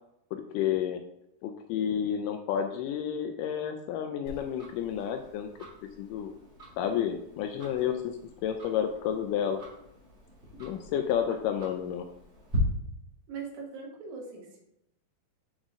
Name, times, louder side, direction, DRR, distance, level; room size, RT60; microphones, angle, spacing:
voice 1, 0.3-1.0 1.4-5.5 6.0-6.3 6.8-8.2 8.4-9.6 10.6-12.1, left 9 dB, 85° left, 6 dB, 1.9 m, -30 dB
Tick-tock, 4.3-12.6, left 1 dB, 25° right, 1.7 m, -46 dB
voice 2, 13.3-14.6, right 5 dB, 75° right, -2 dB, 3.3 m, -40 dB
7.1 x 4.9 x 3.7 m, 0.80 s
omnidirectional pair, 4.3 m